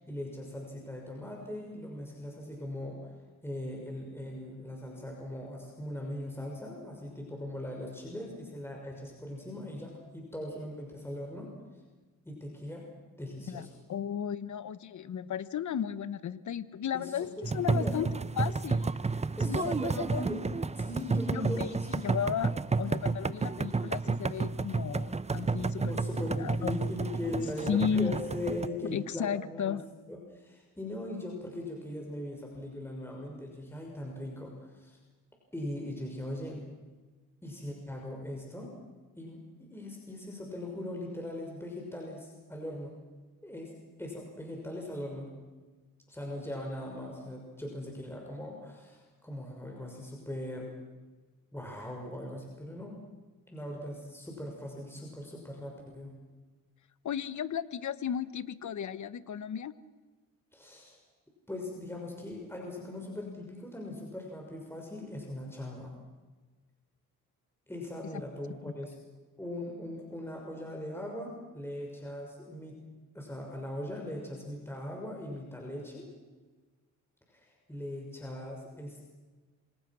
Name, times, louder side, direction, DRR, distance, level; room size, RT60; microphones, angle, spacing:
voice 1, 0.0-3.1 3.4-11.5 12.2-12.9 13.2-13.7 16.9-17.1 17.4-18.0 19.4-20.4 20.7-21.9 25.8-29.8 30.1-35.0 35.5-36.6 37.4-38.7 39.2-43.0 43.4-43.7 44.0-45.3 46.1-50.7 51.5-53.0 53.5-56.2 60.5-61.0 61.5-66.0 67.7-68.9 69.4-72.8 73.1-76.1 77.3-79.0, left 1 dB, 5° left, 0 dB, 6.3 m, -40 dB
voice 2, 13.5-18.1 18.4-18.9 19.5-20.3 21.3-25.9 26.4-26.8 27.7-28.1 28.8-29.8 57.0-59.7 68.7-68.8, left 8 dB, 55° left, 15 dB, 1.2 m, -34 dB
sound 1, 17.4-28.7, right 4 dB, 20° right, 0.8 m, -31 dB
27.5 x 25.5 x 6.3 m, 1.3 s
cardioid pair, 95°, 34 cm